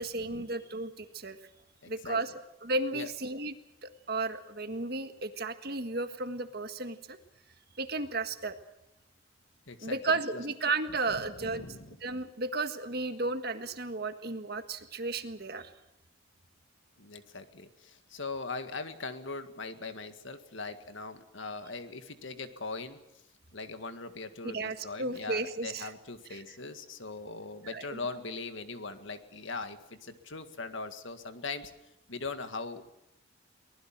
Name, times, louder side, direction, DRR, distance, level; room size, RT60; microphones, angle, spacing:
voice 1, 0.0-1.4 1.9-2.3 2.6-3.6 3.8-7.2 7.8-8.5 9.8-11.7 12.0-15.7 24.4-25.9 26.3-26.4 27.7-28.0, right 3 dB, 50° right, 8 dB, 1.6 m, -34 dB
voice 2, 1.8-2.2 2.9-3.1 9.7-10.0 11.4-12.0 17.0-23.0 23.5-31.7 32.1-32.9, left 3 dB, 70° left, 9 dB, 1.9 m, -40 dB
24.0 x 19.5 x 7.5 m, 0.85 s
head